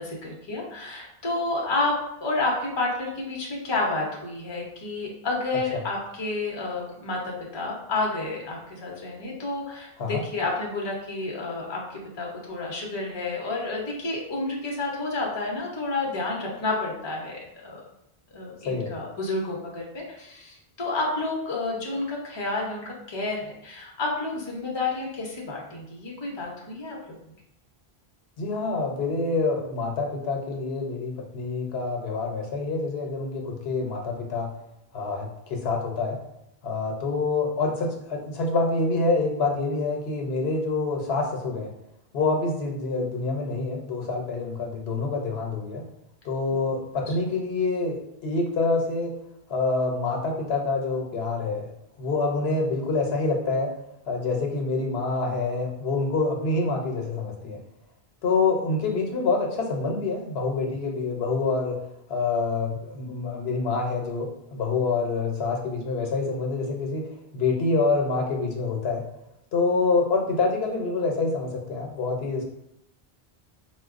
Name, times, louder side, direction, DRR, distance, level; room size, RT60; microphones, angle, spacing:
voice 1, 0.0-17.8 18.3-27.2 46.5-46.7, left 2 dB, 30° left, -2 dB, 0.6 m, -30 dB
voice 2, 28.4-34.5 34.9-36.2 36.6-41.7 42.1-45.9 46.2-49.1 49.5-51.6 52.0-53.7 54.1-57.6 58.2-61.8 62.1-67.1 67.3-69.1 69.5-72.4, left 3 dB, 80° left, 1 dB, 0.9 m, -26 dB
4.5 x 2.2 x 2.4 m, 0.80 s
omnidirectional pair, 1.0 m